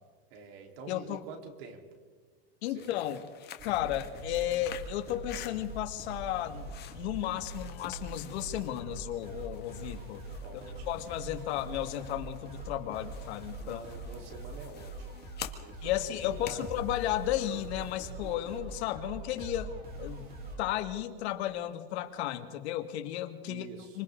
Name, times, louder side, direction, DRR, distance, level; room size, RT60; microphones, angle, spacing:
voice 1, 0.3-1.8 2.7-3.0 10.4-11.0 13.6-15.2 15.5-16.7 23.4-24.0, right 5 dB, 65° right, 2 dB, 3.9 m, -47 dB
voice 2, 0.9-1.2 2.6-3.2 3.6-10.2 10.5-13.8 15.8-19.7 20.0-20.2 20.6-23.7 23.9-24.0, left 13 dB, 80° left, 7 dB, 1.9 m, -34 dB
sound 1, 2.6-18.2, left 10 dB, 30° left, 1.7 m, -50 dB
sound 2, 3.6-20.7, right 2 dB, 30° right, 3.8 m, -43 dB
27.0 x 26.0 x 3.8 m, 1.5 s
supercardioid pair, 155°, 32 cm